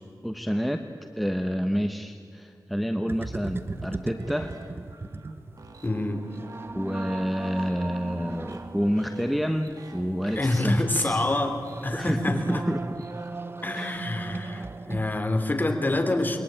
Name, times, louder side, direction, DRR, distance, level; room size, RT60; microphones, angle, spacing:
voice 1, 0.2-0.8 1.2-4.6 6.7-11.2 11.9-12.8 13.7-14.1, equal, ahead, 6 dB, 1.1 m, -28 dB
sound 1, 3.1-15.2, right 3 dB, 35° right, 0.9 m, -38 dB
sound 2, 3.7-14.5, right 3 dB, 55° right, 2.8 m, -50 dB
voice 2, 5.8-6.2 10.3-12.7 13.6-16.4, left 2 dB, 25° left, 5 dB, 3.3 m, -26 dB
27.5 x 22.0 x 9.1 m, 2.4 s
wide cardioid pair, 105°, 7 cm